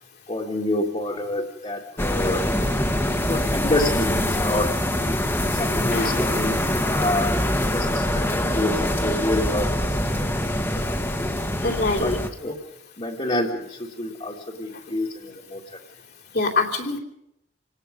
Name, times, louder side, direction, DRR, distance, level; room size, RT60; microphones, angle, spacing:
voice 1, 0.3-2.5 3.1-5.2 5.5-7.3 7.7-10.3 10.6-11.4 12.0-12.6 13.0-15.8, left 1 dB, 30° left, -3 dB, 2.2 m, -28 dB
sound 1, 2.0-12.3, left 1 dB, 15° left, 1.5 m, -24 dB
voice 2, 5.7-6.2 11.6-12.3 14.9-15.0 16.3-17.0, left 3 dB, 55° left, -1 dB, 2.9 m, -25 dB
27.5 x 18.5 x 5.4 m, 0.80 s
head